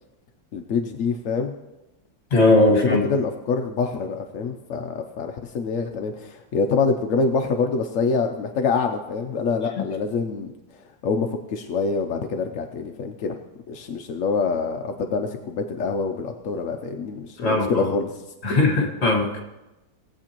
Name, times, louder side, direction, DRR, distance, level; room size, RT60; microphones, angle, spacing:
voice 1, 0.5-1.5 2.7-10.5 11.0-13.3 13.7-18.1 18.4-18.7, left 4 dB, 65° left, 4 dB, 0.8 m, -25 dB
voice 2, 2.3-3.0 17.4-17.9 18.4-19.4, left 2 dB, 35° left, 1 dB, 1.9 m, -19 dB
18.5 x 7.8 x 2.9 m, 0.99 s
omnidirectional pair, 2.0 m